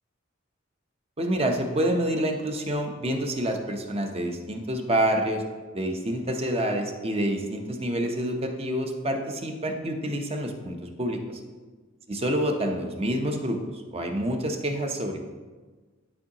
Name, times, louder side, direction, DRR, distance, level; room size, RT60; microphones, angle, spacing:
voice 1, 1.2-5.4 5.7-11.4 12.1-15.2, right 1 dB, 30° right, 3 dB, 0.7 m, -27 dB
11.0 x 4.7 x 2.9 m, 1.4 s
head